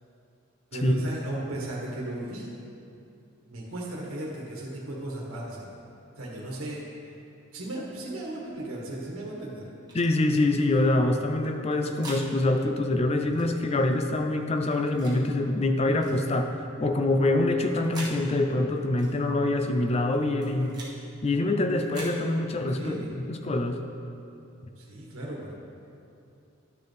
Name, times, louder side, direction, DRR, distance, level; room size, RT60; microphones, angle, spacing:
voice 1, 0.7-2.5 3.5-5.7 6.2-6.8 7.5-9.7 22.8-23.1 24.8-25.6, right 1 dB, 80° right, -4 dB, 1.5 m, -36 dB
voice 2, 9.9-20.8 21.2-23.0 23.3-23.8, left 2 dB, 30° left, 5 dB, 0.4 m, -25 dB
sound 1, 9.9-10.1 11.4-12.2 13.3-13.5 14.6-15.2 16.0-16.2 17.4-18.2 19.0-19.2 20.1-20.9 21.7-22.2, right 2 dB, 20° right, 1.2 m, -43 dB
11.5 x 6.6 x 3.4 m, 2.6 s
head